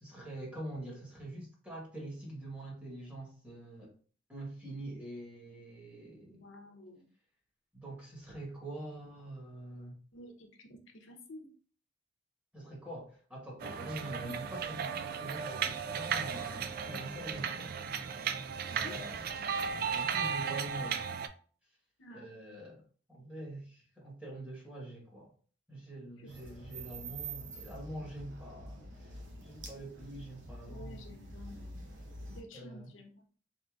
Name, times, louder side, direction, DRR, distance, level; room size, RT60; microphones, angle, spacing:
voice 1, 0.0-3.9 4.3-6.4 7.7-10.0 12.5-17.7 18.7-21.1 22.1-22.8 23.1-25.3 25.7-29.1 29.4-31.0 32.5-32.9, right 1 dB, 5° right, 1.3 m, -45 dB
voice 2, 6.3-7.1 10.1-11.5 18.7-19.0 22.0-22.3 26.2-26.3 30.7-32.0 32.3-33.2, left 1 dB, 90° left, 0.9 m, -51 dB
sound 1, 13.6-21.3, right 6 dB, 50° right, 0.3 m, -35 dB
sound 2, 26.3-32.4, right 2 dB, 75° right, 0.9 m, -46 dB
3.8 x 3.6 x 2.4 m
head